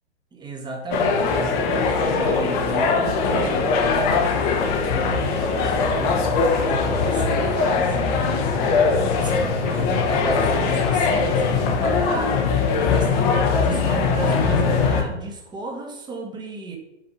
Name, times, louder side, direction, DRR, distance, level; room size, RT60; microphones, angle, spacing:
voice 1, 0.3-8.1 8.6-8.8 9.2-16.8, right 4 dB, 10° right, 2 dB, 1.5 m, -34 dB
sound 1, 0.9-15.0, left 4 dB, 35° left, 1.3 m, -21 dB
6.1 x 5.3 x 6.9 m, 0.97 s
figure-of-eight pair, 115°, 35 cm